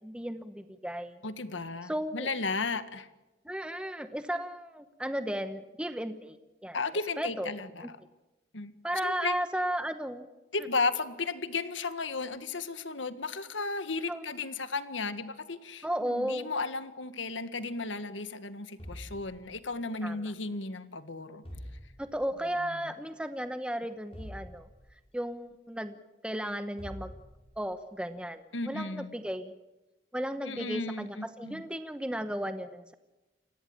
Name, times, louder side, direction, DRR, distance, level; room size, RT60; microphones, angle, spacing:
voice 1, 0.0-1.2 1.8-2.3 3.4-6.4 6.6-6.8 7.2-7.5 7.8-7.9 8.8-10.3 14.1-14.2 15.8-16.5 20.0-20.3 22.0-24.7 25.1-26.0 26.2-27.1 27.6-29.5 30.1-32.9, equal, 5° right, 9 dB, 0.9 m, -34 dB
voice 2, 1.2-3.1 6.7-8.0 8.5-8.7 9.0-9.3 10.5-21.4 22.6-22.9 28.5-29.1 30.5-31.6, left 3 dB, 85° left, 11 dB, 1.7 m, -34 dB
sound 1, 18.8-19.9 21.4-22.4 24.1-25.2 26.8-27.8, equal, 30° left, 6.5 m, -45 dB
29.0 x 17.0 x 8.8 m, 1.1 s
head